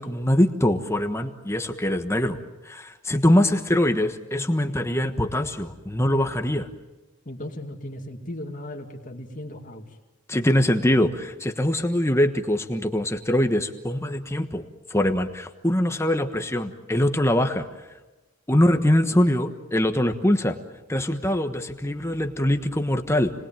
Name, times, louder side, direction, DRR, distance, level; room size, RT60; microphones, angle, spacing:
voice 1, 0.0-2.4 2.6-6.7 10.3-14.6 14.9-17.7 18.5-20.6 20.9-23.3, left 1 dB, 15° left, 6 dB, 1.3 m, -23 dB
voice 2, 7.2-10.0, left 1 dB, 40° left, 2 dB, 2.6 m, -37 dB
30.0 x 20.5 x 9.1 m, 1.1 s
head